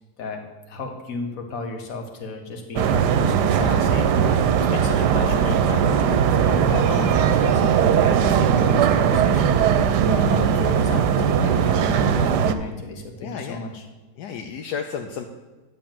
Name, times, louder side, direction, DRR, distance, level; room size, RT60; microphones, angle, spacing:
voice 1, 0.2-4.1 4.6-13.8, left 3 dB, 60° left, 3 dB, 1.5 m, -33 dB
sound 1, 2.8-12.5, right 7 dB, 85° right, 1.2 m, -19 dB
voice 2, 13.2-13.6 14.2-15.2, left 7 dB, 80° left, 4 dB, 1.2 m, -32 dB
10.5 x 3.8 x 7.4 m, 1.2 s
omnidirectional pair, 1.8 m